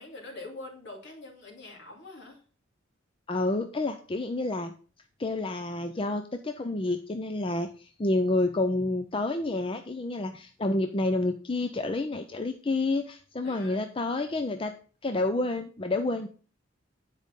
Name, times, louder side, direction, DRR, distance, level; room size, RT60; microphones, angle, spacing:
voice 1, 0.0-2.4 13.4-14.0, left 2 dB, 60° left, 0 dB, 2.7 m, -44 dB
voice 2, 3.3-4.7 5.2-14.7 15.0-16.3, left 2 dB, 25° left, 6 dB, 0.5 m, -29 dB
9.5 x 5.0 x 5.4 m, 0.39 s
head